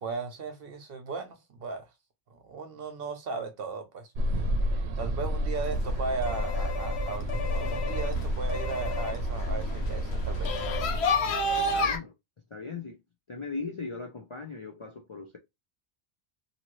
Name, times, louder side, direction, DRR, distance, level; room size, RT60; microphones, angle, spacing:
voice 1, 0.0-1.9 2.3-4.1 5.0-10.7, right 4 dB, 65° right, 0.9 m, -36 dB
sound 1, 4.1-11.0, equal, 90° right, 0.9 m, -30 dB
sound 2, 5.5-12.0, left 2 dB, 80° left, 1.0 m, -32 dB
voice 2, 11.7-12.1 12.5-13.0 13.3-15.4, left 4 dB, 45° left, 0.4 m, -38 dB
2.8 x 2.7 x 3.0 m
omnidirectional pair, 1.1 m